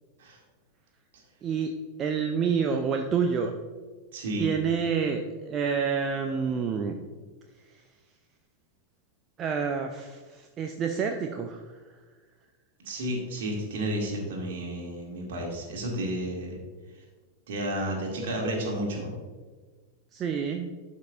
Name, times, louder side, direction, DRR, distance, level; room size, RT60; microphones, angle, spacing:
voice 1, 1.4-1.7 2.0-3.5 4.4-7.0 9.4-11.7 20.1-20.7, right 6 dB, 30° right, 4 dB, 0.5 m, -28 dB
voice 2, 4.1-4.5 12.8-16.6 17.5-19.1, right 1 dB, 55° right, 0 dB, 2.0 m, -32 dB
11.5 x 5.5 x 2.5 m, 1.4 s
figure-of-eight pair, 90°, 0 cm